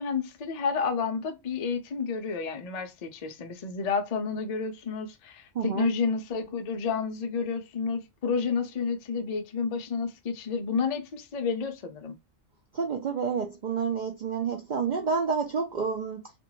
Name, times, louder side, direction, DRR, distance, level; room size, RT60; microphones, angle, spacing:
voice 1, 0.0-12.2, left 5 dB, 60° left, 0.4 m, -30 dB
voice 2, 5.5-5.9 12.7-16.2, right 5 dB, 85° right, 0.4 m, -29 dB
2.5 x 2.2 x 2.9 m
omnidirectional pair, 1.3 m